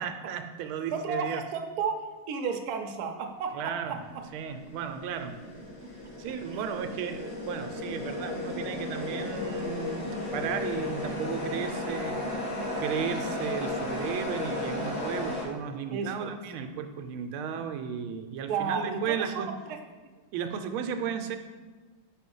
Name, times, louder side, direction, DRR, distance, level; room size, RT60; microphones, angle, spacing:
voice 1, 0.0-1.4 3.5-4.0 4.3-5.4 6.2-12.2 12.8-19.5 20.3-21.4, right 7 dB, 90° right, 6 dB, 1.5 m, -34 dB
voice 2, 0.9-4.0 6.5-6.6 15.9-16.3 18.5-19.3 19.7-19.8, right 5 dB, 65° right, 4 dB, 0.9 m, -33 dB
sound 1, 3.9-15.5, left 2 dB, 70° left, 2.1 m, -34 dB
4.9 x 4.9 x 5.3 m, 1.4 s
omnidirectional pair, 2.3 m